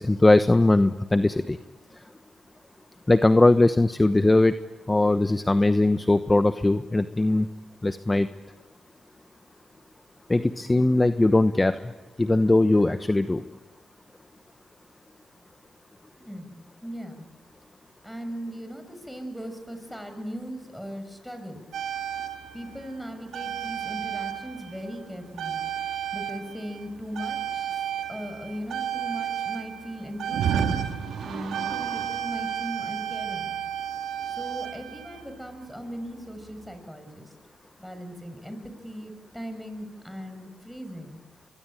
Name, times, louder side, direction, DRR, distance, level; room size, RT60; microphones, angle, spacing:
voice 1, 0.0-1.6 3.1-4.5 4.9-7.5 7.8-8.3 10.3-11.8 12.2-13.4, left 2 dB, 20° left, 11 dB, 1.0 m, -20 dB
voice 2, 16.2-17.3 18.0-21.6 22.5-25.6 26.1-30.7 31.2-33.6 34.3-37.3 37.8-41.2, equal, ahead, 7 dB, 6.6 m, -38 dB
sound 1, 21.7-25.0 25.4-35.4 36.4-36.5, right 9 dB, 75° right, 2.0 m, -32 dB
24.0 x 23.0 x 9.2 m, 1.2 s
supercardioid pair, 55°, 0 cm